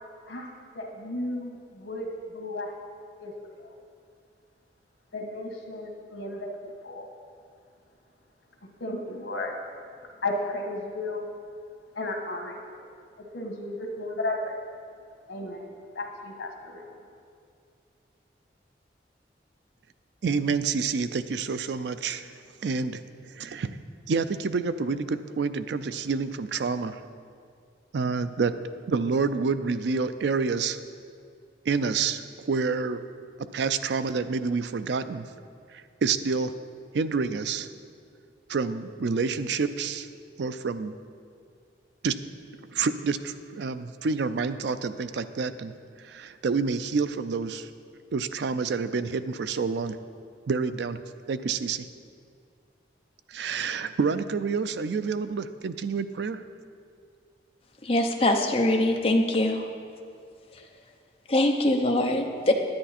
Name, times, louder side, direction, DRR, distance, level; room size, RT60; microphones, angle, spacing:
voice 1, 0.3-2.7 3.2-3.7 5.1-7.1 8.8-9.6 10.2-11.3 11.9-12.9 13.3-14.6 15.3-16.9, left 2 dB, 90° left, 2 dB, 1.5 m, -34 dB
voice 2, 20.2-22.3 22.6-23.0 23.3-23.8 24.1-27.0 27.9-28.5 28.9-30.8 31.7-33.0 33.5-35.3 35.7-36.5 36.9-37.7 38.5-40.1 40.4-40.9 42.0-42.2 42.7-45.7 46.0-47.7 48.1-50.0 50.5-51.0 51.3-51.9 53.3-56.4, right 4 dB, 70° right, 12 dB, 0.4 m, -28 dB
voice 3, 57.8-59.7 61.3-62.5, left 1 dB, 30° left, 2 dB, 0.8 m, -23 dB
10.5 x 9.9 x 4.2 m, 2.3 s
head